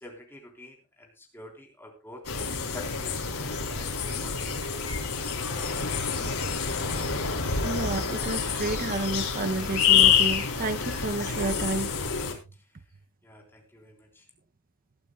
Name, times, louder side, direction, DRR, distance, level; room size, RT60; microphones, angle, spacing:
voice 1, 0.0-2.2 2.7-4.3 13.2-13.9, left 1 dB, 10° left, 1 dB, 3.6 m, -47 dB
sound 1, 2.2-12.3, left 6 dB, 80° left, 3.6 m, -27 dB
voice 2, 7.6-11.9, right 2 dB, 40° right, 9 dB, 0.7 m, -31 dB
20.5 x 12.5 x 2.3 m, 0.29 s
head